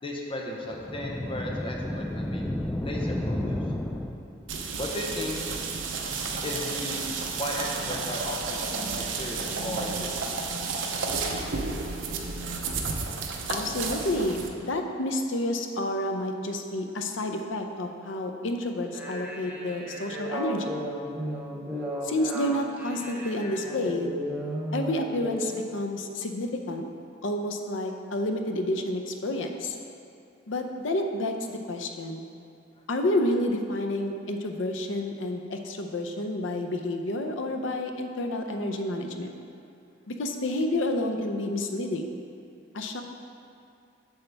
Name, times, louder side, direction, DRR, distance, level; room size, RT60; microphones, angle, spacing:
voice 1, 0.0-2.5 2.8-3.6 4.8-5.5 6.4-10.7 32.8-32.9 38.5-38.6, left 1 dB, 30° left, -1 dB, 0.7 m, -35 dB
sound 1, 0.7-4.5, left 1 dB, 5° left, 0.3 m, -31 dB
sound 2, 4.5-14.5, right 4 dB, 80° right, 0.7 m, -32 dB
voice 2, 13.5-20.8 22.0-24.1 24.7-26.9 27.2-29.8 30.5-32.2 32.9-39.3 40.1-42.2 42.7-43.0, left 1 dB, 90° left, 4 dB, 0.6 m, -30 dB
sound 3, 18.8-25.5, right 1 dB, 10° right, 0.8 m, -35 dB
7.9 x 6.9 x 3.4 m, 2.5 s
head